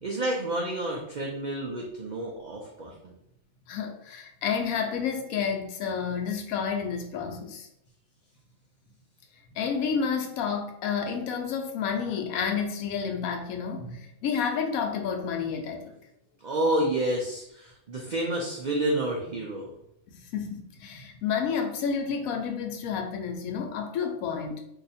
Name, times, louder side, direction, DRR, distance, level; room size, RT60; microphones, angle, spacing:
voice 1, 0.0-3.2 16.4-19.7, right 1 dB, 75° right, -1 dB, 0.4 m, -29 dB
voice 2, 3.7-7.7 9.5-15.9 20.1-24.6, left 6 dB, 80° left, 4 dB, 1.0 m, -30 dB
2.7 x 2.4 x 4.0 m, 0.77 s
omnidirectional pair, 1.4 m